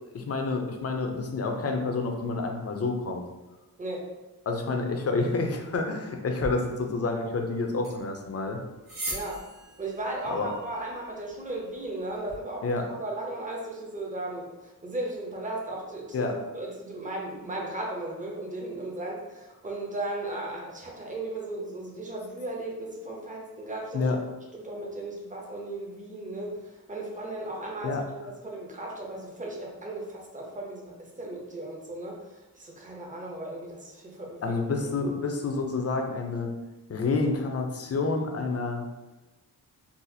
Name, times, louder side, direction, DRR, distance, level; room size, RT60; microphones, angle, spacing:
voice 1, 0.1-3.2 4.5-8.6 10.2-10.5 12.6-12.8 16.1-16.3 23.9-24.2 27.8-28.0 34.4-36.5 36.9-38.9, left 3 dB, 40° left, 3 dB, 0.5 m, -29 dB
sound 1, 6.4-12.4, right 2 dB, 70° right, 1.1 m, -42 dB
voice 2, 9.1-9.5 9.8-24.2 24.5-28.2 28.4-34.6 34.8-35.1, right 2 dB, 20° right, -2 dB, 0.6 m, -36 dB
4.0 x 2.4 x 2.7 m, 1.1 s
wide cardioid pair, 140°, 38 cm